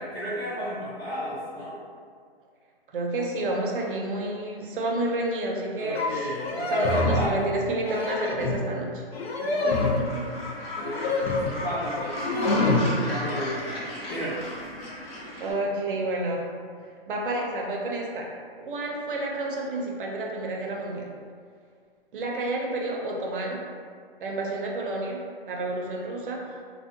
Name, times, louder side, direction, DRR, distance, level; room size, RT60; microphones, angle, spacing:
voice 1, 0.1-1.7 5.8-7.3 9.4-9.7 10.5-12.4 12.8-14.5, equal, 15° left, -11 dB, 0.5 m, -34 dB
voice 2, 2.9-6.3 6.7-9.0 9.6-10.2 10.8-11.2 15.4-16.5 17.1-18.3 18.6-21.1 22.1-23.6 24.2-25.2 25.5-26.5, right 2 dB, 60° right, -1 dB, 0.5 m, -30 dB
sound 1, 5.9-6.1 6.4-7.3 7.8-8.7 9.1-10.1 10.8-11.6 11.9-12.9, left 2 dB, 90° left, 0.5 m, -26 dB
Gull seagull, 9.7-15.5, left 1 dB, 65° left, 0.9 m, -36 dB
2.5 x 2.1 x 2.4 m, 2.1 s
hypercardioid pair, 150°, 31 cm